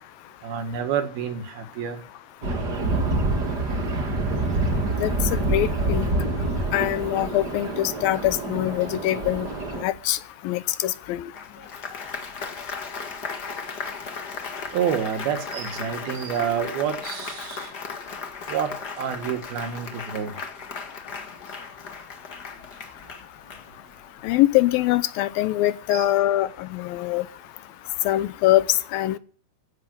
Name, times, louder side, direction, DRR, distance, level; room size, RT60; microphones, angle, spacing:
voice 1, 0.4-2.0 14.7-17.7 18.5-18.7 19.0-20.3 25.9-26.1, right 8 dB, 70° right, 3.6 m, -28 dB
sound 1, 2.4-9.8, right 2 dB, 35° right, 1.9 m, -26 dB
voice 2, 5.0-6.1 6.7-9.5 9.7-10.2 10.4-11.2 24.2-27.3 28.1-29.2, left 15 dB, 75° left, 2.4 m, -23 dB
Applause, 11.3-24.1, left 5 dB, 50° left, 1.2 m, -36 dB
15.5 x 7.4 x 9.0 m
omnidirectional pair, 4.6 m